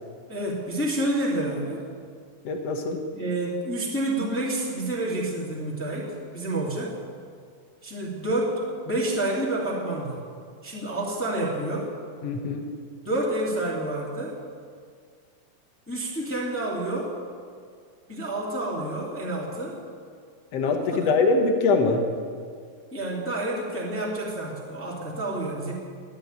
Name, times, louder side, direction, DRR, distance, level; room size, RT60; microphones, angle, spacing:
voice 1, 0.3-1.9 3.1-6.9 7.8-10.2 10.6-11.9 13.0-14.4 15.9-17.1 18.1-19.8 20.8-21.1 22.9-25.7, right 1 dB, 5° left, -5 dB, 1.5 m, -29 dB
voice 2, 2.4-3.0 12.2-12.7 20.5-22.1, left 3 dB, 75° left, 4 dB, 1.5 m, -23 dB
11.5 x 8.7 x 9.3 m, 2.1 s
omnidirectional pair, 4.3 m